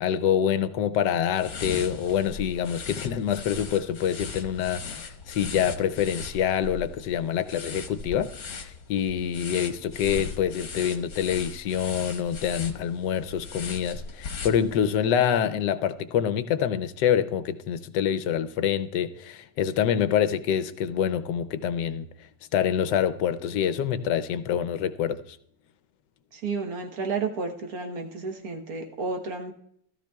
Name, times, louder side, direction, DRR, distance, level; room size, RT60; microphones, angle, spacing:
voice 1, 0.0-22.1 22.5-25.4, left 9 dB, 80° left, 1.2 m, -26 dB
sound 1, 1.3-15.0, left 5 dB, 60° left, 1.5 m, -38 dB
voice 2, 26.3-29.5, right 4 dB, 60° right, 1.5 m, -31 dB
16.5 x 13.0 x 2.3 m
omnidirectional pair, 1.9 m